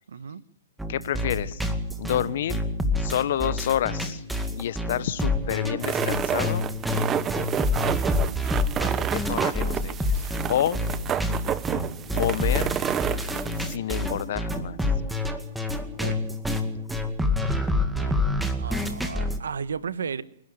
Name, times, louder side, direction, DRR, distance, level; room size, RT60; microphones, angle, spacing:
voice 1, 0.1-0.4 8.0-8.4 16.0-16.2 18.0-18.2 18.6-20.2, right 6 dB, 80° right, 15 dB, 1.3 m, -34 dB
sound 1, 0.8-19.4, left 1 dB, 5° right, 2.1 m, -28 dB
voice 2, 0.9-1.6 2.0-2.6 3.0-4.2 4.6-6.6 8.8-10.8 12.1-12.8 13.6-14.8, left 11 dB, 60° left, 16 dB, 1.2 m, -29 dB
sound 2, 5.8-13.8, right 9 dB, 20° right, 0.9 m, -29 dB
28.5 x 11.5 x 9.2 m, 0.78 s
hypercardioid pair, 125°, 0 cm